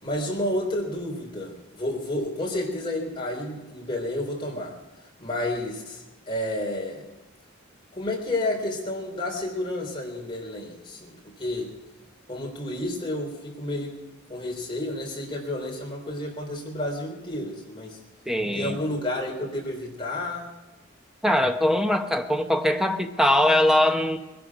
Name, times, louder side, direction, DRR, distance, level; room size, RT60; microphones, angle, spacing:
voice 1, 0.0-4.7 5.2-7.0 7.9-11.7 12.3-14.0 14.3-18.0 18.5-20.5, left 1 dB, 25° left, 0 dB, 3.8 m, -30 dB
voice 2, 18.3-18.8 21.2-24.2, left 1 dB, ahead, 5 dB, 0.9 m, -22 dB
20.5 x 11.5 x 6.0 m, 1.1 s
head